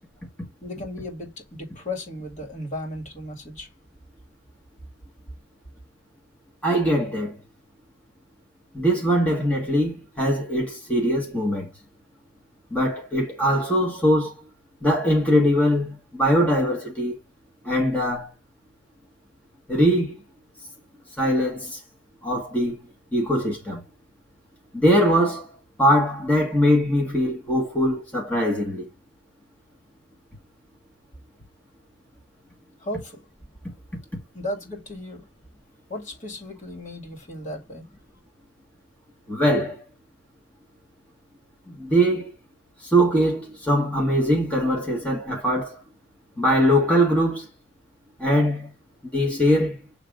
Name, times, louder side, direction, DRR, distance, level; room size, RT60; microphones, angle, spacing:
voice 1, 0.6-3.7 32.8-33.2 34.3-35.2 35.9-37.9, left 1 dB, 40° left, 2.4 m, -35 dB
voice 2, 6.6-7.3 8.7-11.7 12.7-14.4 14.8-17.1 17.6-18.3 19.7-20.1 21.2-21.8 22.2-22.8 23.1-23.8 24.7-25.5 25.8-28.8 39.3-39.8 41.8-42.3 42.8-45.8 46.4-47.5 48.2-48.7 49.1-49.8, equal, 10° left, 1.5 m, -21 dB
7.8 x 3.4 x 3.6 m
head